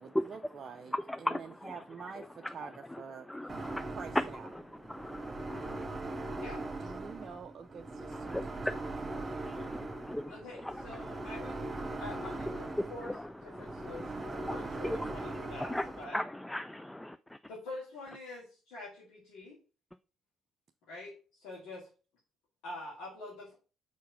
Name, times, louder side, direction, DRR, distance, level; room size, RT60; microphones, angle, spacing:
voice 1, 0.0-4.5 6.8-8.4 8.6-8.8, right 6 dB, 45° right, 0.5 m, -47 dB
voice 2, 0.9-1.8 2.2-2.5 2.9-3.0 3.3-3.8 4.5-5.9 8.1-17.4, left 1 dB, 10° left, 0.3 m, -39 dB
sound 1, 3.5-16.0, right 2 dB, 25° right, 1.3 m, -40 dB
voice 3, 10.3-11.6 12.0-13.1 13.4-16.2 17.5-19.6 20.9-21.9 22.6-23.5, left 2 dB, 65° left, 2.3 m, -46 dB
4.6 x 4.6 x 5.0 m
figure-of-eight pair, 45°, 0 cm